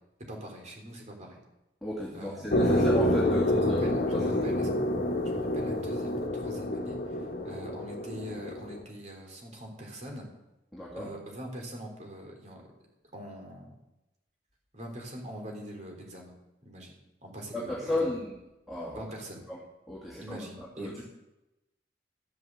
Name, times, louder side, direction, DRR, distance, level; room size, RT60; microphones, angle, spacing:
voice 1, 0.3-1.4 2.1-2.9 3.2-4.9 5.2-10.3 11.0-12.7 13.1-13.8 14.7-16.4 16.6-18.2 19.0-19.4 20.2-21.0, equal, 40° right, 1 dB, 3.6 m, -42 dB
voice 2, 1.8-3.8 4.1-4.2 10.7-11.1 17.5-18.3 18.7-19.0 19.5-19.6 19.9-20.4 20.8-20.9, left 1 dB, ahead, -7 dB, 2.6 m, -33 dB
sound 1, 2.5-8.8, left 1 dB, 55° left, 1.3 m, -28 dB
13.0 x 7.9 x 7.7 m, 0.95 s
head